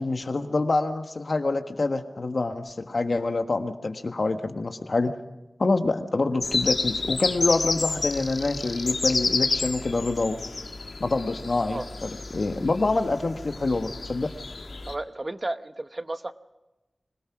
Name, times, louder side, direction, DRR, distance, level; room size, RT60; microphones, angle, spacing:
voice 1, 0.0-5.1 5.6-10.4 11.0-14.3, left 3 dB, 65° left, 7 dB, 1.4 m, -26 dB
sound 1, 6.4-14.9, left 3 dB, 85° left, 1.7 m, -30 dB
voice 2, 14.8-16.3, right 2 dB, 35° right, 10 dB, 0.8 m, -33 dB
25.5 x 17.5 x 6.0 m, 1.0 s
wide cardioid pair, 75°, 0 cm